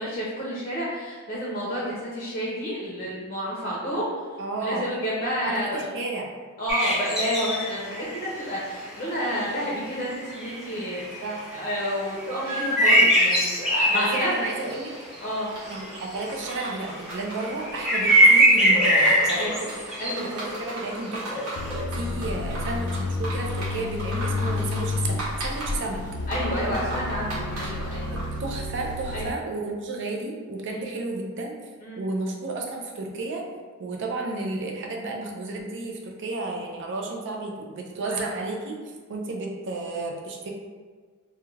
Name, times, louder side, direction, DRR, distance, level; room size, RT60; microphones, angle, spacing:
voice 1, 0.0-4.1 4.6-5.8 6.6-11.0 11.5-14.3 15.2-15.5 19.4-19.5 20.0-20.3 26.3-28.1 29.1-29.3 30.7-30.8 31.8-32.0 38.0-38.2, equal, 30° left, -6 dB, 0.6 m, -30 dB
voice 2, 4.4-4.9 5.4-6.3 11.2-11.5 13.9-14.9 15.7-19.7 20.3-21.6 21.9-26.0 28.1-31.5 32.0-33.4 33.8-38.8 39.1-40.5, right 2 dB, 55° right, 0 dB, 0.4 m, -32 dB
sound 1, 6.7-8.1 8.5-8.6 8.9-9.0 9.3-9.6 10.0-15.2 15.6-21.8, equal, 5° right, 0.8 m, -22 dB
sound 2, 15.5-28.4, right 1 dB, 90° right, 1.0 m, -37 dB
sound 3, 21.6-29.3, left 2 dB, 80° left, 0.3 m, -30 dB
2.3 x 2.2 x 3.1 m, 1.5 s
head